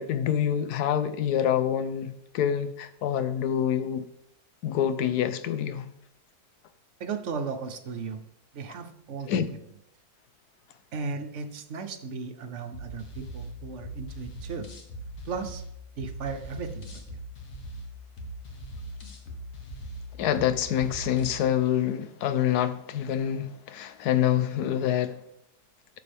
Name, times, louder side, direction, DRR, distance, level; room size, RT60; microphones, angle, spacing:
voice 1, 0.0-4.1 4.6-5.9 9.3-9.5 20.2-25.2, left 10 dB, 80° left, 1.2 m, -26 dB
voice 2, 7.0-8.2 8.5-9.4 10.9-14.7 15.2-15.6 16.0-16.9, right 5 dB, 55° right, 1.0 m, -35 dB
sound 1, 12.7-21.4, right 1 dB, 60° left, 1.6 m, -41 dB
11.5 x 6.8 x 3.5 m
omnidirectional pair, 1.7 m